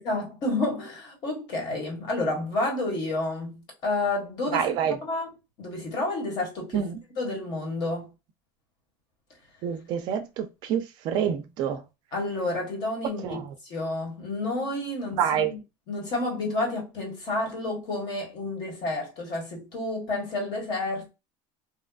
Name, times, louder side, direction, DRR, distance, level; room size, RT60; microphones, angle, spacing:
voice 1, 0.1-4.6 5.0-5.3 5.6-6.9 7.2-8.1 12.1-15.6 15.9-21.1, left 2 dB, 45° left, 1.4 m, -30 dB
voice 2, 4.5-5.0 6.7-7.0 9.6-11.8 13.2-13.4 15.2-15.5, right 8 dB, 45° right, 0.4 m, -27 dB
2.8 x 2.2 x 2.3 m
cardioid pair, 160°, 10 cm